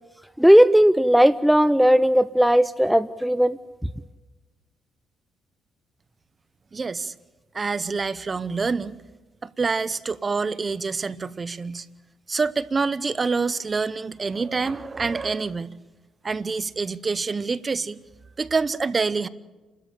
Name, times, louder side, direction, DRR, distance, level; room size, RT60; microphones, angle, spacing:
voice 1, 0.4-3.6, equal, ahead, 13 dB, 0.6 m, -16 dB
voice 2, 6.7-7.1 7.5-9.0 9.4-11.9 12.3-15.8 16.2-18.0 18.4-19.3, right 4 dB, 30° right, 16 dB, 0.8 m, -26 dB
29.5 x 13.0 x 8.9 m, 1.2 s
cardioid pair, 90°, 0 cm